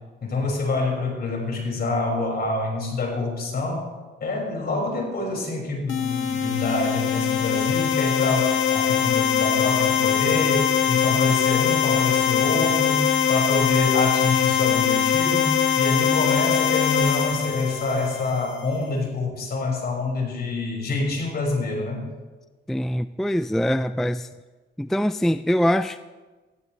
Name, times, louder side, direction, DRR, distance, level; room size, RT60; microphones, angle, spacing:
voice 1, 0.2-3.9 4.2-22.1, left 3 dB, 50° left, -1 dB, 6.1 m, -26 dB
sound 1, 5.9-18.6, left 8 dB, 75° left, 1.5 m, -22 dB
voice 2, 22.7-24.3 24.8-26.0, equal, ahead, 12 dB, 0.4 m, -23 dB
20.5 x 15.0 x 3.4 m, 1.3 s
cardioid pair, 90°, 20 cm